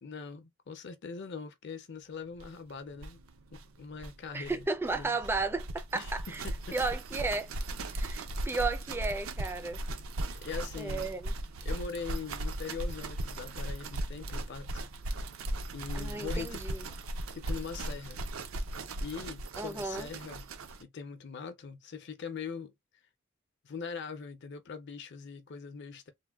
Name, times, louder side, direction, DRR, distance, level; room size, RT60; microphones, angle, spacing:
voice 1, 0.0-3.2 3.5-4.7 4.9-5.1 5.9-6.1 6.4-6.8 10.4-11.1 11.6-14.9 15.7-16.6 17.3-18.2 19.0-20.5 20.8-22.7 23.6-26.1, left 5 dB, 55° left, 0.5 m, -42 dB
sound 1, 2.4-2.5 2.7-2.8 3.0-20.8, right 1 dB, 80° right, 0.5 m, -37 dB
voice 2, 4.3-6.4 6.7-7.5 7.9-9.8 10.8-11.3 15.9-16.9 19.6-20.1, right 3 dB, 10° right, 0.3 m, -34 dB
3.4 x 2.1 x 2.3 m
head